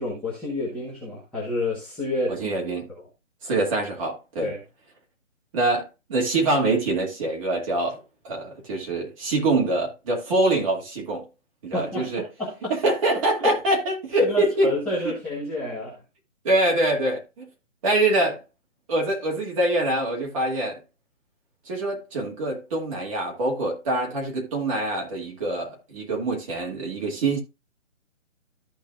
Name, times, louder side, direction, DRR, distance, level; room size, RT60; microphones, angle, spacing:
voice 1, 0.0-2.4 2.9-3.0 4.4-4.6 11.7-12.8 13.1-13.6 14.2-16.0, left 2 dB, 5° left, 1.2 m, -29 dB
voice 2, 2.3-2.9 3.4-4.5 5.5-11.3 11.6-12.2 12.7-14.7 16.4-17.5 17.8-18.4 18.9-20.8 21.7-27.4, right 2 dB, 25° right, 2.5 m, -24 dB
14.0 x 5.3 x 2.5 m
hypercardioid pair, 170°, 39 cm